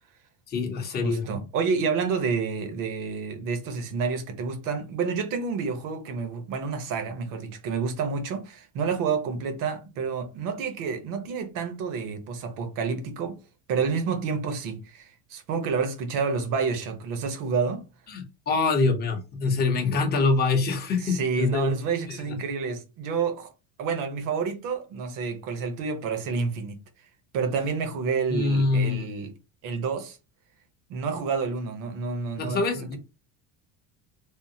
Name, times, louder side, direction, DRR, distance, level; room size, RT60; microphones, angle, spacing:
voice 1, 0.5-1.3 18.1-21.7 22.1-22.4 28.3-29.1 32.4-33.0, left 3 dB, 25° left, 0.7 m, -25 dB
voice 2, 1.0-13.4 13.7-17.8 21.0-23.5 23.8-26.8 27.3-29.3 29.6-30.2 30.9-33.0, right 5 dB, 55° right, 0.9 m, -29 dB
3.6 x 2.0 x 2.7 m
cardioid pair, 145°, 40 cm